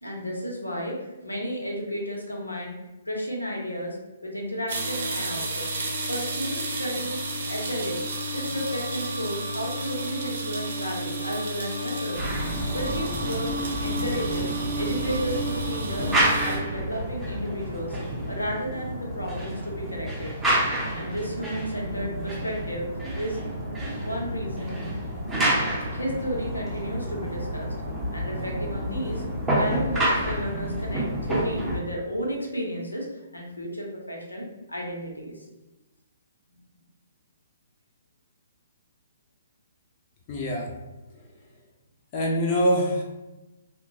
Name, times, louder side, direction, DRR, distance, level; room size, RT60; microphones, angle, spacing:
voice 1, 0.0-2.8 3.0-4.0 4.2-5.7 6.1-7.2 7.5-8.0 8.3-12.3 12.7-13.5 13.8-18.0 18.3-20.3 21.0-22.9 23.2-23.4 24.0-24.8 25.9-27.7 28.1-29.2 29.6-33.1 33.3-35.5, equal, 80° left, -1 dB, 0.7 m, -32 dB
sound 1, 4.7-16.6, right 1 dB, 55° right, 0.7 m, -31 dB
sound 2, 12.2-31.8, right 1 dB, 10° right, 0.7 m, -29 dB
voice 2, 40.3-40.7 41.1-41.3 42.1-43.0, equal, 30° left, -1 dB, 0.5 m, -24 dB
2.8 x 2.2 x 2.7 m, 1.0 s
figure-of-eight pair, 125°, 0 cm